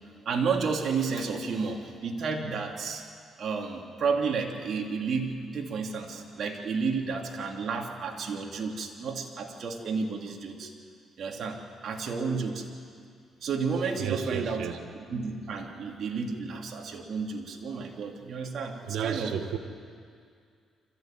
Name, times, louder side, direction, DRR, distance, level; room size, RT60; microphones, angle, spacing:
voice 1, 0.2-3.0 3.4-10.7 11.2-12.6 13.4-14.7 15.1-19.3, right 5 dB, 60° right, 1 dB, 3.2 m, -31 dB
voice 2, 14.0-14.8 18.9-19.6, right 8 dB, 80° right, 8 dB, 1.7 m, -32 dB
25.0 x 15.0 x 9.3 m, 2.2 s
cardioid pair, 90°, 0 cm